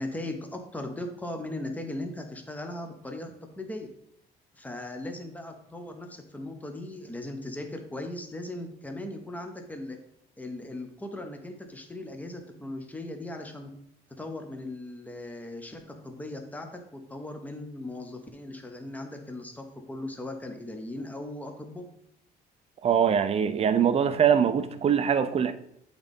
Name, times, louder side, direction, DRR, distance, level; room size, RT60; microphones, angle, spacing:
voice 1, 0.0-3.9 4.5-10.0 10.4-13.7 14.2-21.8, left 1 dB, 10° left, 1.0 m, -38 dB
voice 2, 22.8-25.5, right 8 dB, 35° right, 0.5 m, -23 dB
8.0 x 3.9 x 3.6 m
cardioid pair, 110°, 17 cm